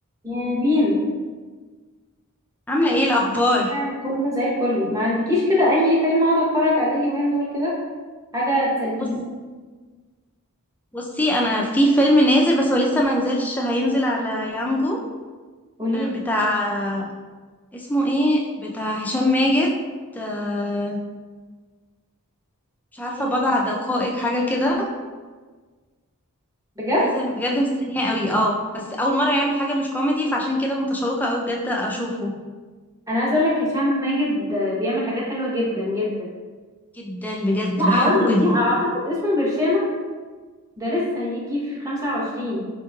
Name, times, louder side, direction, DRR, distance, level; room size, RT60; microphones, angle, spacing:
voice 1, 0.2-1.0 3.7-7.8 8.3-9.2 15.8-16.2 23.2-23.3 26.8-27.1 33.1-36.3 37.8-39.9 40.8-42.7, left 1 dB, 15° right, -5 dB, 0.8 m, -22 dB
voice 2, 2.7-3.7 10.9-15.0 15.9-17.1 17.7-19.7 20.1-21.0 22.9-24.9 27.0-32.3 36.9-38.6, equal, 5° left, -1 dB, 0.3 m, -22 dB
4.5 x 2.9 x 2.2 m, 1.4 s
head